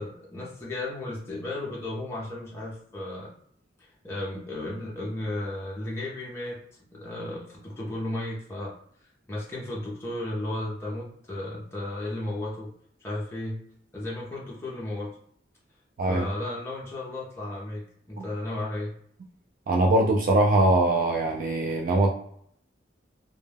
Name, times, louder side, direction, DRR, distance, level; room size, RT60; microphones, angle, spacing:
voice 1, 0.0-3.3 3.8-6.6 6.9-8.7 9.3-12.7 13.0-13.6 13.9-15.1 16.1-18.9, left 1 dB, 15° left, -6 dB, 0.5 m, -34 dB
voice 2, 19.7-22.1, right 2 dB, 50° right, 0 dB, 0.3 m, -22 dB
2.1 x 2.1 x 3.3 m, 0.65 s
head